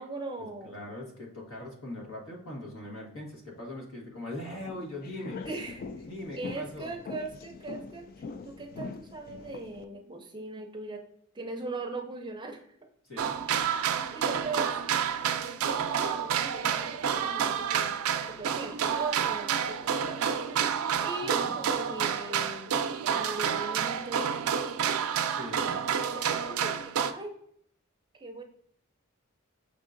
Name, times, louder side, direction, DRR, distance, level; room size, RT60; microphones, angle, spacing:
voice 1, 0.0-0.8 5.4-5.8 6.3-11.0 11.3-12.7 14.1-14.7 15.1-18.0 18.3-20.2 21.0-22.8 23.1-24.7 25.9-27.4 28.2-28.4, right 2 dB, 20° right, 4 dB, 0.5 m, -40 dB
voice 2, 0.6-5.4 6.1-6.9 13.0-13.4 21.2-21.6 25.3-25.8, left 1 dB, 75° left, -1 dB, 1.4 m, -41 dB
sound 1, 4.6-9.8, left 4 dB, 45° left, 0.3 m, -43 dB
sound 2, 13.2-27.1, right 8 dB, 90° right, 0.4 m, -29 dB
5.5 x 3.6 x 2.5 m, 0.66 s
head